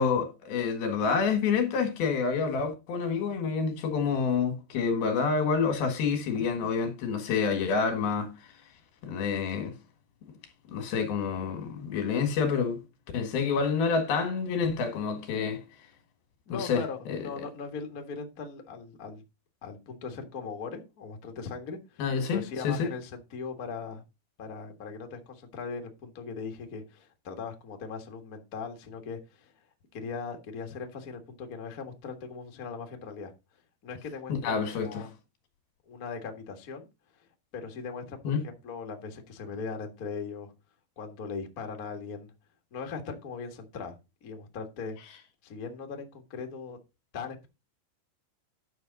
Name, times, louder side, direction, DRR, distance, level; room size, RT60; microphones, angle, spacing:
voice 1, 0.0-8.3 9.0-9.7 10.7-12.8 13.1-15.6 16.5-16.8 17.1-17.2 22.0-22.9 34.3-35.1 38.3-38.4, left 5 dB, 80° left, 3.7 m, -28 dB
voice 2, 16.5-19.2 19.6-24.0 24.4-29.5 29.9-33.3 33.8-35.1 35.9-36.9 37.5-40.5 41.0-42.3 42.7-45.0 45.4-46.8 47.1-47.5, left 5 dB, 55° left, 0.9 m, -39 dB
11.0 x 6.3 x 4.0 m
omnidirectional pair, 4.3 m